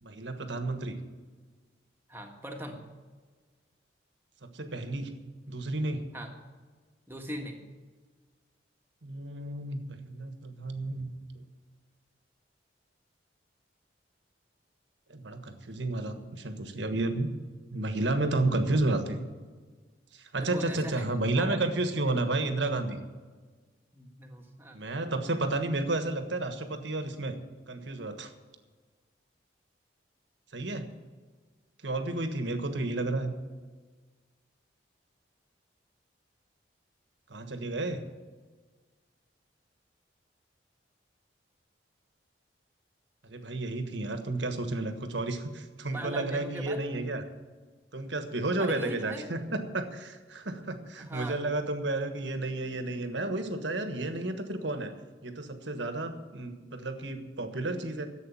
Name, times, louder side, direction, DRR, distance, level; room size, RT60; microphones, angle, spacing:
voice 1, 0.0-1.0 4.5-5.1 5.5-6.1 9.0-11.1 15.1-17.3 17.7-19.2 20.1-23.0 24.7-27.4 27.7-28.3 30.5-30.9 31.8-33.3 37.3-38.0 43.2-47.2 47.9-54.9 55.2-58.1, right 2 dB, 75° right, 8 dB, 1.4 m, -31 dB
voice 2, 2.1-2.8 6.1-6.3 7.1-7.6 20.4-21.1 21.3-21.6 23.9-24.8 45.9-46.8 48.6-49.3 51.0-51.4, right 1 dB, 10° right, 2 dB, 1.6 m, -40 dB
11.5 x 8.1 x 9.8 m, 1.4 s
head